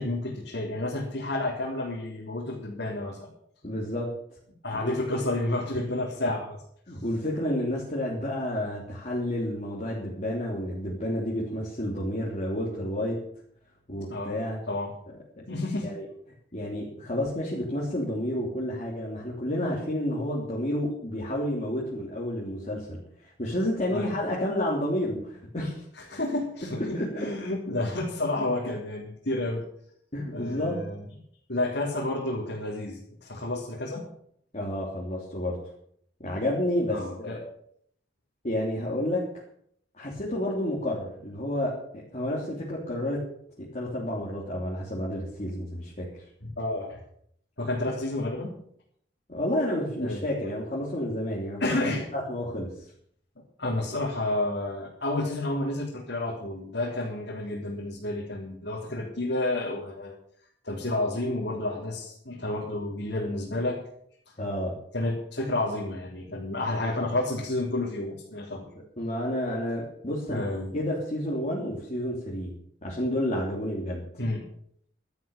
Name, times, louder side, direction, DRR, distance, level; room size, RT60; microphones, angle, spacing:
voice 1, 0.0-3.3 4.6-6.6 14.1-14.4 14.7-14.9 15.5-15.9 23.9-24.1 26.1-29.6 30.3-31.0 31.5-34.0 36.9-37.4 46.4-47.0 47.6-48.5 50.0-50.2 51.6-52.0 53.6-60.1 60.6-63.8 64.9-68.7 70.3-70.7 74.2-74.4, left 2 dB, 70° left, -5 dB, 3.6 m, -30 dB
voice 2, 3.6-4.1 4.7-5.0 5.7-5.8 6.9-13.2 13.9-14.6 15.1-15.4 15.8-16.0 16.5-25.8 26.7-27.3 30.1-30.8 34.5-35.6 36.2-37.4 38.4-39.2 40.0-43.2 43.6-46.1 49.3-51.6 51.9-52.7 64.4-64.8 69.0-70.4 70.7-72.5 72.8-74.0, left 1 dB, 40° left, -5 dB, 3.3 m, -30 dB
12.5 x 10.5 x 7.2 m, 0.66 s
head